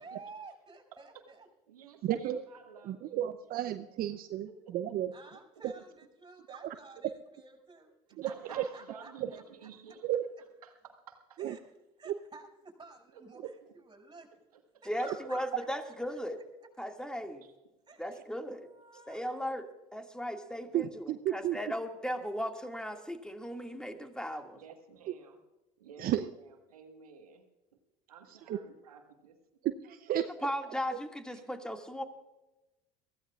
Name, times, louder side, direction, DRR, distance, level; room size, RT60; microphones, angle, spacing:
voice 1, 0.0-1.5 5.1-9.7 11.4-11.6 12.0-14.3 14.8-15.4 17.9-18.1 18.5-19.5, right 3 dB, 25° right, 3 dB, 5.8 m, -52 dB
voice 2, 0.9-1.3 1.7-3.2 3.7-4.2 4.5-5.0 8.1-10.1 10.6-11.4 13.1-13.7 17.4-17.7 18.9-19.1 24.5-25.4 25.8-27.4 28.1-29.4, right 6 dB, 90° right, 4 dB, 1.6 m, -53 dB
voice 3, 2.0-2.4 2.9-4.5 4.7-5.1 6.6-6.7 8.2-8.3 10.0-10.2 11.4-11.5 20.7-21.6 26.0-26.2 28.5-28.6 29.6-30.3, right 12 dB, 55° right, 9 dB, 0.7 m, -32 dB
voice 4, 14.8-16.4 16.8-17.4 18.0-18.7 19.1-24.6 30.3-32.0, equal, 5° left, 4 dB, 2.1 m, -37 dB
23.5 x 16.0 x 2.5 m, 1.0 s
hypercardioid pair, 65°, 18 cm